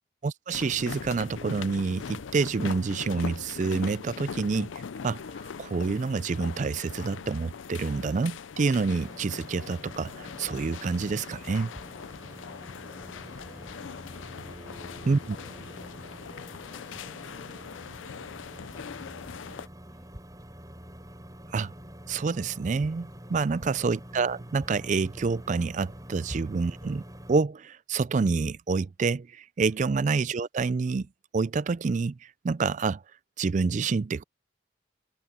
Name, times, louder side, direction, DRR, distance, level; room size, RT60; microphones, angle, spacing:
voice 1, 0.2-4.7 5.0-11.7 15.1-15.4 21.5-21.7 22.1-27.0 27.3-31.1 31.3-32.2 32.4-33.0 33.4-34.2, right 4 dB, 40° right, 0.4 m, -28 dB
sound 1, 0.5-19.7, left 6 dB, 85° left, 0.5 m, -41 dB
sound 2, 9.0-27.4, equal, 20° right, 5.5 m, -46 dB
voice 2, 12.5-13.9 14.4-14.9 15.3-20.2 29.7-29.9, equal, ahead, 6.4 m, -59 dB
head